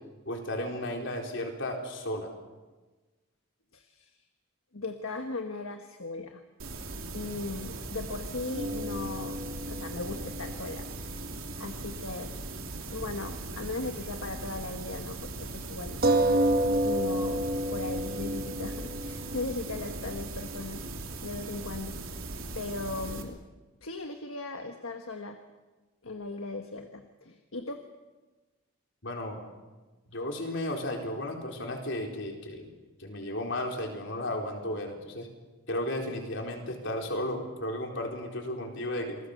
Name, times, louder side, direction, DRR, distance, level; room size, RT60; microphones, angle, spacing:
voice 1, 0.3-2.3 29.0-29.4 30.1-32.7 33.0-35.3 35.7-39.2, left 1 dB, 55° left, 1 dB, 4.2 m, -34 dB
voice 2, 3.7-4.2 4.7-6.4 7.1-10.9 11.6-12.3 12.9-16.0 16.8-22.0 22.5-23.4 23.8-25.4 26.0-27.8, left 3 dB, 70° left, 5 dB, 1.5 m, -38 dB
sound 1, 6.6-23.2, right 2 dB, 70° right, 3.0 m, -39 dB
sound 2, 8.6-12.4 12.7-12.8 16.0-21.2, right 1 dB, 45° right, 1.3 m, -31 dB
28.0 x 21.0 x 6.7 m, 1.2 s
head